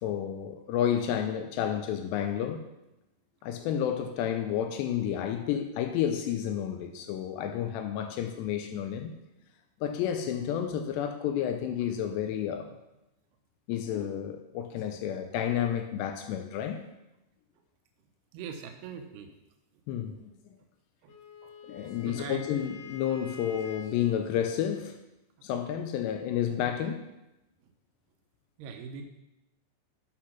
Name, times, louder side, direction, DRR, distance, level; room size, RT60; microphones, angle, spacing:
voice 1, 0.0-2.6 3.4-9.1 9.8-12.7 13.7-16.8 19.9-20.3 21.7-25.0 25.4-27.0, left 9 dB, 85° left, 2.4 m, -31 dB
voice 2, 18.3-19.4 21.0-21.1 21.4-21.5 22.0-22.4 28.6-29.0, right 6 dB, 80° right, 2.3 m, -41 dB
Wind instrument woodwind instrument, 21.1-24.3, left 5 dB, 70° left, 2.9 m, -47 dB
8.9 x 5.9 x 5.8 m
omnidirectional pair, 5.6 m